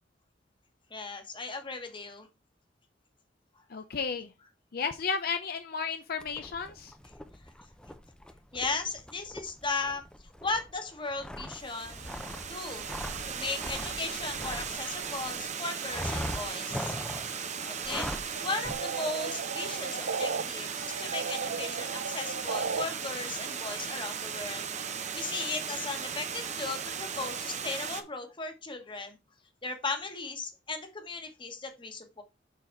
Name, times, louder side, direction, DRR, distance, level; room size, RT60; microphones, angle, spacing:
voice 1, 0.9-2.3 8.5-10.0 10.4-12.8 13.3-16.9 17.6-24.7 25.1-29.2 29.6-32.2, left 3 dB, 30° left, 6 dB, 1.3 m, -37 dB
voice 2, 3.7-4.3 4.7-6.9, left 5 dB, 55° left, 8 dB, 0.6 m, -33 dB
sound 1, 6.2-15.4 15.9-17.3 17.8-18.3 18.6-18.7, equal, 5° left, 0.6 m, -41 dB
Water, 11.5-28.0, right 7 dB, 40° right, 0.9 m, -37 dB
sound 2, 18.4-20.4 20.8-22.8, right 5 dB, 75° right, 0.6 m, -35 dB
6.9 x 4.0 x 4.5 m, 0.27 s
head